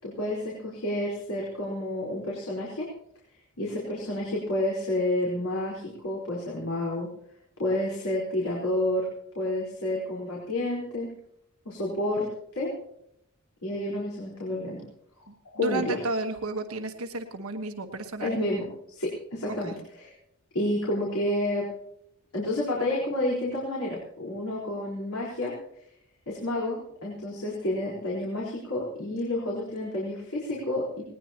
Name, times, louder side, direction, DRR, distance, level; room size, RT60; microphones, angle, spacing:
voice 1, 0.0-2.9 3.6-7.1 7.6-9.1 9.3-11.1 11.6-12.3 12.5-12.7 13.6-14.8 15.2-16.0 18.2-20.1 20.5-21.7 22.3-25.5 26.3-31.0, left 1 dB, 80° left, -5 dB, 4.5 m, -30 dB
voice 2, 15.6-18.4 19.5-19.8, right 2 dB, 75° right, 5 dB, 1.4 m, -32 dB
19.5 x 19.5 x 3.0 m, 0.74 s
head